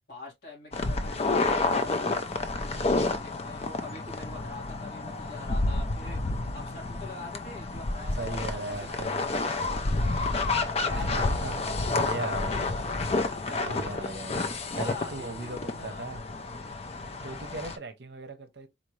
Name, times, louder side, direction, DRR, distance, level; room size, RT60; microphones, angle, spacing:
voice 1, 0.1-10.3 10.8-11.3 11.6-11.8 12.1-14.2 14.7-16.1, left 2 dB, 55° left, 2.1 m, -44 dB
sound 1, 0.7-17.8, left 3 dB, 30° left, 0.4 m, -30 dB
voice 2, 8.2-9.3 10.9-11.6 11.9-12.7 13.6-16.3 17.2-18.7, right 3 dB, 55° right, 0.7 m, -38 dB
4.2 x 2.7 x 3.1 m
head